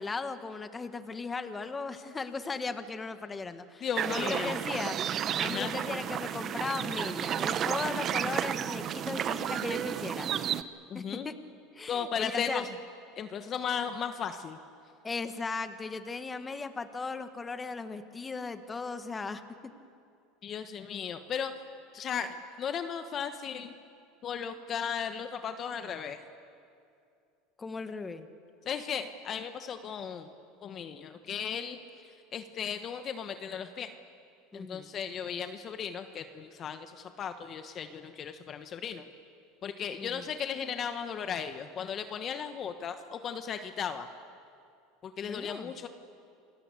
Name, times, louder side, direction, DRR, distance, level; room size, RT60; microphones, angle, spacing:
voice 1, 0.0-5.0 5.4-10.3 10.9-11.3 11.7-12.6 15.0-19.7 27.6-28.3 34.5-34.9 40.0-40.3 45.2-45.7, left 4 dB, 20° left, 9 dB, 1.5 m, -37 dB
voice 2, 3.8-4.6 5.4-5.7 10.9-11.3 11.9-12.7 13.2-14.6 20.4-21.5 21.9-23.7 24.2-26.2 28.6-30.3 30.6-33.9 34.5-39.0 39.6-44.1 45.0-45.9, left 7 dB, 40° left, 8 dB, 1.2 m, -36 dB
sound 1, 3.9-10.6, right 9 dB, 40° right, 0.9 m, -32 dB
28.0 x 19.5 x 8.4 m, 2.5 s
supercardioid pair, 110°, 0 cm